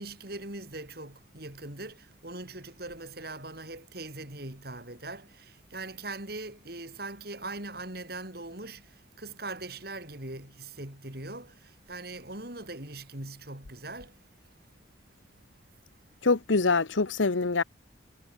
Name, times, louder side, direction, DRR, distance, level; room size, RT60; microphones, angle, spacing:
voice 1, 0.0-14.8 15.2-16.4, right 2 dB, 55° right, 4.9 m, -41 dB
voice 2, 16.2-17.6, left 3 dB, 85° left, 1.0 m, -24 dB
head